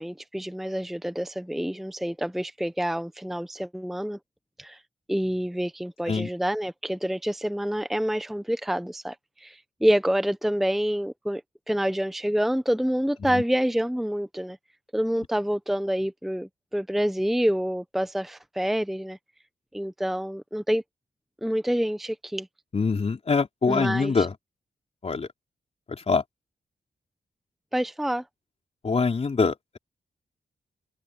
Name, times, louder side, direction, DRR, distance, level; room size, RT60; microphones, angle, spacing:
voice 1, 0.0-4.2 4.6-4.8 5.1-11.4 11.7-14.6 14.9-19.2 19.7-20.8 21.4-22.5 23.7-24.3 27.7-28.2, equal, ahead, 0.8 m, -27 dB
voice 2, 22.7-24.3 25.0-25.3 26.1-26.2 28.8-29.8, left 4 dB, 40° left, 3.6 m, -24 dB
open air
wide cardioid pair, 120°, 16 cm